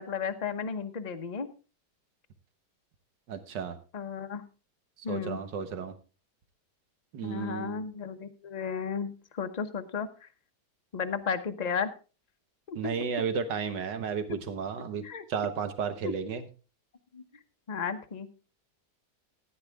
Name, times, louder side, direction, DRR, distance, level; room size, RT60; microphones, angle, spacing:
voice 1, 0.0-1.5 3.9-4.4 5.0-5.4 7.2-10.3 10.9-11.9 12.7-12.9 15.0-15.2 16.0-16.1 17.1-17.2 17.7-18.3, left 6 dB, 30° left, 8 dB, 0.8 m, -34 dB
voice 2, 3.3-3.8 5.1-5.9 7.1-7.8 12.8-15.0 15.3-16.5, right 6 dB, 85° right, 9 dB, 1.9 m, -33 dB
14.5 x 10.0 x 3.5 m, 0.34 s
omnidirectional pair, 1.9 m